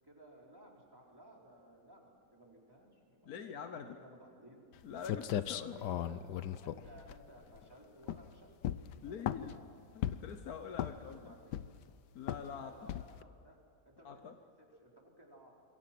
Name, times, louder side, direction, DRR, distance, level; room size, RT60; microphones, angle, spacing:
voice 1, 0.0-4.6 5.7-8.6 8.9-10.2 10.8-11.6 12.4-13.6 13.8-14.3 14.6-15.5, right 1 dB, 15° right, -2 dB, 4.4 m, -58 dB
voice 2, 3.2-4.0 4.8-5.8 9.0-9.6 9.9-11.3 12.1-13.0 14.0-14.3, left 7 dB, 65° left, 7 dB, 1.4 m, -45 dB
sound 1, 4.7-4.8 5.0-7.6 8.0-8.3 8.6-9.6 10.0-10.4 10.7-11.2 11.5-11.9 12.3-12.5 12.9-13.2, left 11 dB, 85° left, 1.4 m, -37 dB
26.5 x 23.0 x 6.1 m, 2.6 s
omnidirectional pair, 1.8 m